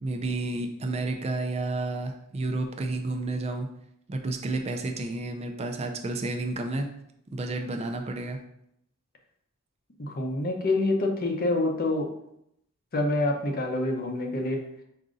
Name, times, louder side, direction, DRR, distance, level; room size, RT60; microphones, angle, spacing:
voice 1, 0.0-3.7 4.1-6.9 7.3-8.4, right 2 dB, 30° right, 4 dB, 0.4 m, -31 dB
voice 2, 10.0-12.1 12.9-14.6, left 2 dB, 45° left, 3 dB, 0.7 m, -26 dB
5.0 x 2.6 x 3.7 m, 0.76 s
head